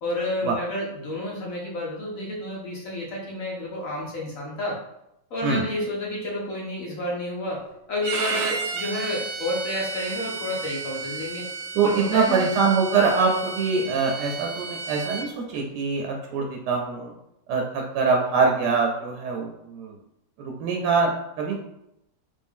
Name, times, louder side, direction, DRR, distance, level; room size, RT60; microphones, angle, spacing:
voice 1, 0.0-4.8 5.3-11.5 11.8-12.5, left 1 dB, 60° left, -3 dB, 1.1 m, -30 dB
Bowed string instrument, 8.0-15.3, right 4 dB, 70° right, 0.7 m, -33 dB
voice 2, 11.7-17.1 17.5-20.0 20.4-21.6, right 4 dB, 90° right, 1 dB, 1.2 m, -24 dB
3.5 x 2.6 x 3.5 m, 0.83 s
omnidirectional pair, 1.7 m